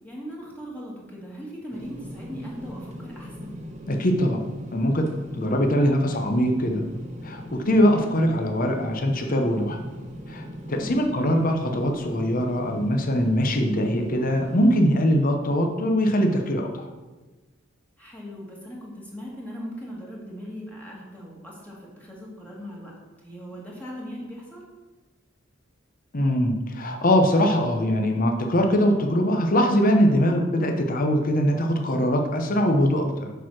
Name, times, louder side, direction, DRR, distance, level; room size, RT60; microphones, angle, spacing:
voice 1, 0.0-3.5 10.7-11.0 18.0-22.9 23.2-24.6, equal, 10° left, -4 dB, 1.6 m, -39 dB
sound 1, 1.7-14.8, equal, 35° right, 1.2 m, -39 dB
voice 2, 3.9-4.4 4.7-5.1 5.3-6.8 7.2-9.8 10.3-16.8 26.1-33.3, equal, 45° left, 3 dB, 0.8 m, -22 dB
6.9 x 4.6 x 6.0 m, 1.2 s
head